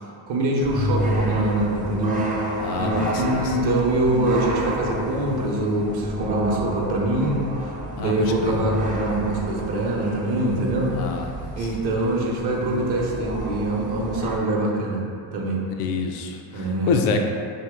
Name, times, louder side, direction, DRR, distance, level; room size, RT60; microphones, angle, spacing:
voice 1, 0.3-2.2 2.8-7.4 8.0-10.9 11.5-15.0 15.3-15.6 16.5-16.9, right 1 dB, 50° right, -1 dB, 0.7 m, -24 dB
sound 1, 0.6-14.4, right 1 dB, 15° right, 0.5 m, -29 dB
voice 2, 2.6-3.5 8.0-8.1 8.4-8.6 10.9-11.5 15.8-17.2, left 4 dB, 80° left, 3 dB, 0.5 m, -27 dB
2.8 x 2.7 x 3.5 m, 2.5 s
cardioid pair, 85°, 50 cm